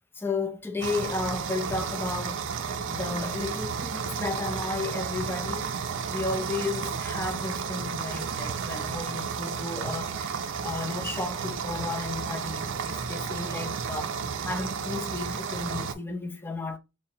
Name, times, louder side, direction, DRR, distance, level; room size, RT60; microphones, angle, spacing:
voice 1, 0.1-5.7 6.1-16.8, left 3 dB, 10° left, 0.4 m, -33 dB
sound 1, 0.8-15.9, right 6 dB, 60° right, 0.5 m, -32 dB
3.7 x 2.0 x 4.2 m
head